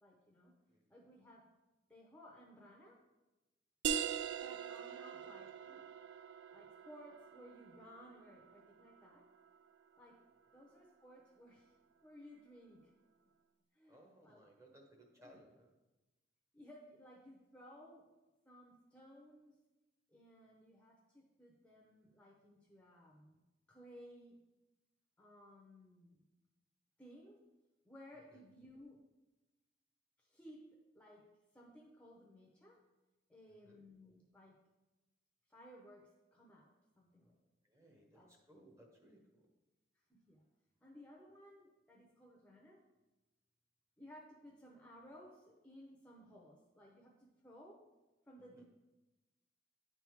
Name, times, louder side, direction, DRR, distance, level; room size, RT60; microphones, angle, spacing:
voice 1, 0.0-0.5 0.9-1.4 1.9-3.0 4.4-5.5 6.5-9.3 10.0-10.2 10.5-11.8 12.0-12.9 13.7-14.4 15.2-15.4 16.5-18.0 18.4-19.5 20.1-24.4 25.2-26.2 27.0-27.4 27.8-29.0 30.2-30.6 30.9-31.2 31.5-32.8 33.3-34.6 35.5-37.4 37.8-38.3 40.1-40.4 40.8-42.8 44.0-47.8 48.3-48.6, equal, 5° left, -2 dB, 0.7 m, -59 dB
sound 1, 3.8-9.2, right 8 dB, 80° right, 0.4 m, -42 dB
voice 2, 13.9-15.7 28.3-28.4 33.5-33.8 37.6-39.5 48.4-48.6, right 1 dB, 15° right, 1 dB, 1.0 m, -64 dB
9.7 x 3.5 x 4.6 m, 1.1 s
head